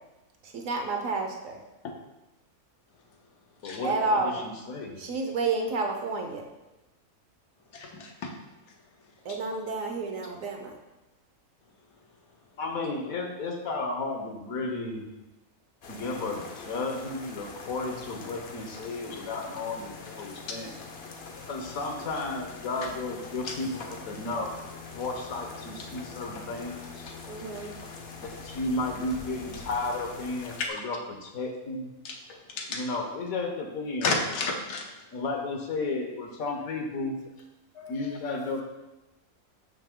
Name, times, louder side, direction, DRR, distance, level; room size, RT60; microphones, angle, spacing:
voice 1, 0.5-1.6 3.8-4.4 5.0-6.4 9.3-10.7 27.3-27.8, right 3 dB, 65° right, 3 dB, 1.1 m, -30 dB
voice 2, 3.6-5.0 12.6-15.1 15.9-20.7 21.4-24.5 24.9-27.1 28.2-31.9 32.7-34.2 35.1-37.1 37.9-38.6, left 3 dB, 70° left, 3 dB, 1.3 m, -33 dB
voice 3, 7.7-8.3 9.3-9.4 23.4-23.5 32.0-32.1 32.6-32.8 34.0-34.8 37.8-38.2, left 3 dB, 85° left, 2 dB, 1.4 m, -32 dB
sound 1, 15.8-30.7, left 4 dB, 55° left, 0.8 m, -43 dB
5.8 x 5.8 x 3.6 m, 1.0 s
omnidirectional pair, 1.6 m